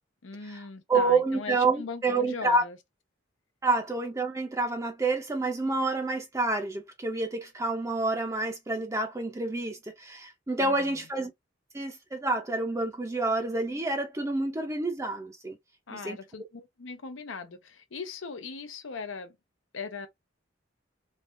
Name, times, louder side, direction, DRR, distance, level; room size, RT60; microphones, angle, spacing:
voice 1, 0.2-2.8 10.6-11.0 15.9-19.4 19.7-20.1, left 4 dB, 90° left, 0.7 m, -40 dB
voice 2, 0.9-2.6 3.6-11.3 11.7-15.6 15.9-16.2, right 3 dB, 15° right, 0.5 m, -28 dB
3.2 x 2.3 x 2.5 m
head